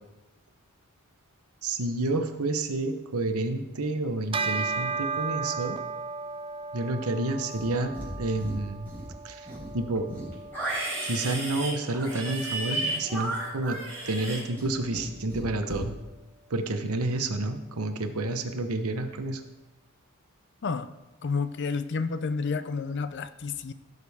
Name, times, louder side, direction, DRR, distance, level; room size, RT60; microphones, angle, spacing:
voice 1, 1.6-5.8 6.7-8.9 9.2-9.5 9.7-10.1 11.0-13.8 14.0-15.9 16.5-19.4, right 2 dB, 80° right, 7 dB, 1.0 m, -29 dB
Bell, 4.3-14.0, right 4 dB, 25° right, 0.3 m, -36 dB
Livestock farm animals working animals, 7.5-8.1 8.4-9.1 9.5-15.1 15.3-15.8, right 2 dB, 10° left, 4.1 m, -34 dB
voice 2, 21.2-23.7, left 4 dB, 50° left, 13 dB, 0.5 m, -30 dB
16.0 x 6.7 x 3.5 m, 1.0 s
head